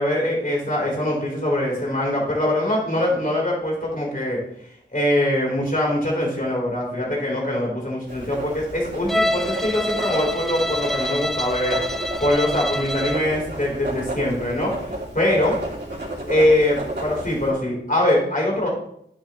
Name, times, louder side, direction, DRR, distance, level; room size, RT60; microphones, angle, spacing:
voice 1, 0.0-4.4 4.9-15.6 16.3-18.7, left 1 dB, 40° left, -3 dB, 4.2 m, -23 dB
Writing, 8.1-17.5, right 1 dB, 55° right, 2.9 m, -32 dB
Bowed string instrument, 9.1-13.3, left 1 dB, ahead, 0.4 m, -26 dB
10.5 x 8.8 x 3.2 m, 0.72 s
wide cardioid pair, 40°, 21 cm